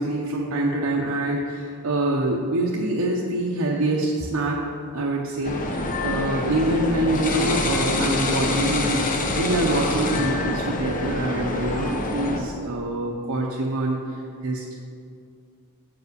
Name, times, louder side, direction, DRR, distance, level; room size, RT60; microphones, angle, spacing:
voice 1, 0.0-4.6 4.9-14.7, right 1 dB, 85° right, -2 dB, 0.8 m, -25 dB
sound 1, 5.4-12.4, left 2 dB, 40° left, 0.7 m, -25 dB
7.4 x 4.8 x 6.5 m, 2.3 s
head